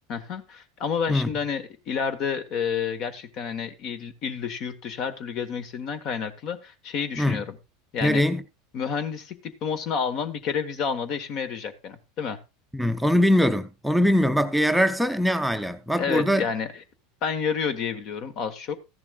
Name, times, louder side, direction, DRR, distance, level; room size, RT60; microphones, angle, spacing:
voice 1, 0.1-7.6 7.9-8.2 8.7-12.4 16.0-16.8 17.2-18.8, left 6 dB, 50° left, 1.3 m, -29 dB
voice 2, 8.0-8.4 12.7-16.5, equal, ahead, 0.6 m, -22 dB
14.0 x 10.5 x 2.4 m
hypercardioid pair, 85°, 0 cm